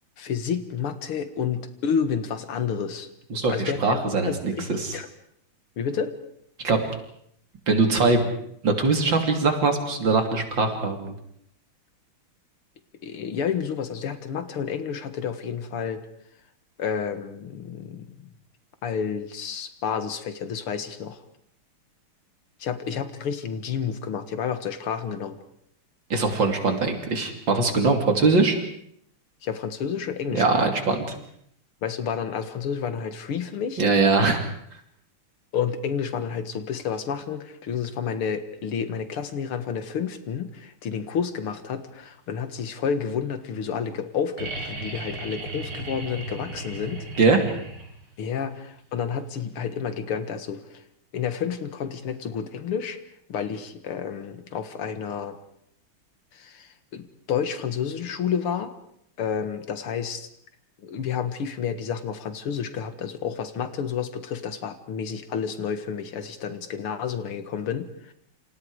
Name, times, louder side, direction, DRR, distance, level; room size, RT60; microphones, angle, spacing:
voice 1, 0.2-3.1 3.5-5.1 5.8-6.1 13.0-16.0 16.8-18.3 18.8-21.2 22.6-25.4 29.4-30.7 31.8-33.8 35.5-47.1 48.2-50.8 51.1-53.0 53.3-55.4 56.3-58.7 59.2-60.3 60.8-68.1, left 7 dB, 80° left, 10 dB, 2.5 m, -30 dB
voice 2, 3.3-5.0 6.6-6.8 7.7-8.3 8.6-11.1 26.1-28.6 30.3-31.0 33.8-34.4 47.2-47.4, right 3 dB, 60° right, 5 dB, 3.6 m, -22 dB
sound 1, 44.4-48.1 49.9-50.0, right 2 dB, 80° right, 5.1 m, -36 dB
28.5 x 27.0 x 4.9 m, 0.69 s
omnidirectional pair, 2.4 m